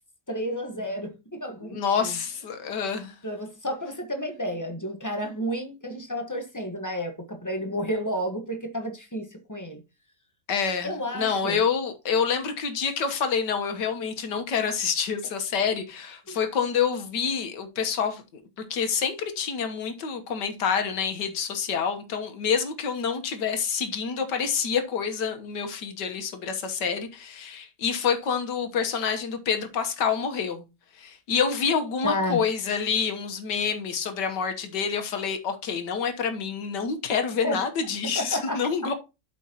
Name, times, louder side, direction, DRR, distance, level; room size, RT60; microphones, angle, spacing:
voice 1, 0.3-2.2 3.2-9.8 10.8-11.6 16.3-16.4 32.0-32.4 37.4-37.6 38.1-38.7, equal, 10° left, 1.2 m, -31 dB
voice 2, 1.6-3.2 10.5-18.4 18.7-30.7 31.0-38.9, left 6 dB, 80° left, 1.8 m, -27 dB
12.0 x 5.3 x 2.9 m
omnidirectional pair, 1.8 m